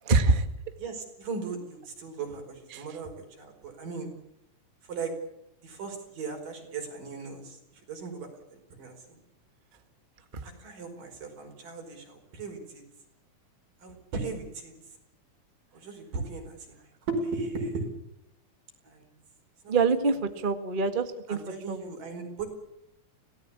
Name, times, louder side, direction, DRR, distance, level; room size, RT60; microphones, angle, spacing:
voice 1, 0.1-0.5 2.7-2.8 19.7-21.4 21.7-21.9, right 3 dB, 25° right, 8 dB, 1.1 m, -25 dB
voice 2, 0.8-3.1 3.4-4.1 4.9-5.1 5.6-7.6 7.9-9.0 10.4-12.8 13.8-14.7 15.7-16.8 17.1-17.9 18.9-19.1 19.6-19.8 21.3-22.5, right 4 dB, 85° right, 3 dB, 6.6 m, -37 dB
25.5 x 18.0 x 8.5 m, 0.79 s
omnidirectional pair, 3.7 m